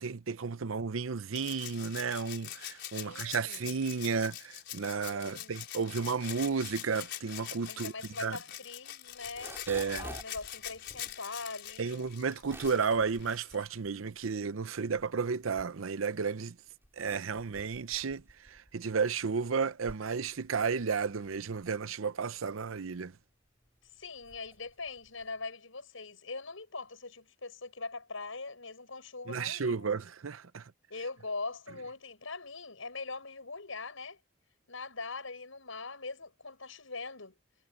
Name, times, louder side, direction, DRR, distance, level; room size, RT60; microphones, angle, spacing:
voice 1, 0.0-7.9 8.2-8.4 9.7-10.1 11.8-16.6 17.0-23.1 29.3-30.7, right 5 dB, 80° right, 0.7 m, -33 dB
Rattle (instrument), 1.3-13.7 15.1-15.2, left 11 dB, 60° left, 5.3 m, -44 dB
voice 2, 2.9-3.7 5.1-5.5 7.6-12.0 24.0-29.9 30.9-34.2 34.7-37.3, left 3 dB, 80° left, 5.7 m, -42 dB
sound 1, 9.1-14.4 14.8-16.2 16.7-25.4, right 1 dB, 10° right, 3.1 m, -52 dB
head